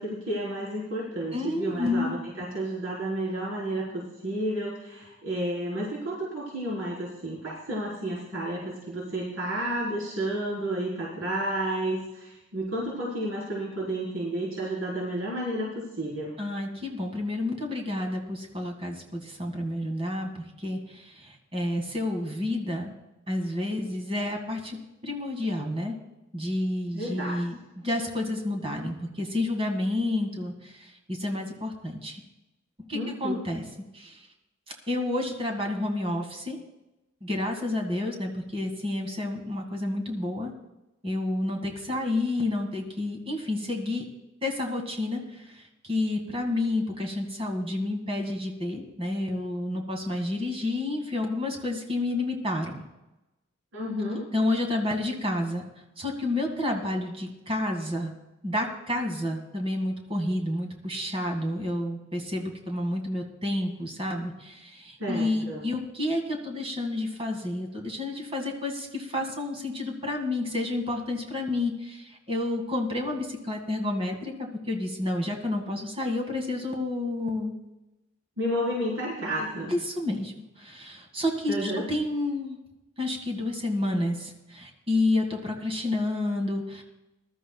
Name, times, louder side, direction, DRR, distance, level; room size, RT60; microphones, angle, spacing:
voice 1, 0.0-16.3 26.9-27.3 32.9-33.4 53.7-54.3 65.0-65.6 78.4-79.7 81.5-81.8, right 1 dB, 85° right, -6 dB, 4.2 m, -31 dB
voice 2, 1.3-2.1 16.4-22.9 23.3-24.8 25.0-26.0 26.3-32.2 32.9-33.6 33.9-34.3 34.9-36.6 37.2-40.5 41.0-44.1 44.4-52.8 54.3-55.6 56.0-58.1 58.4-74.3 74.7-77.5 79.7-82.6 83.0-86.8, left 2 dB, 30° right, 2 dB, 2.1 m, -30 dB
21.0 x 13.0 x 2.4 m, 0.97 s
head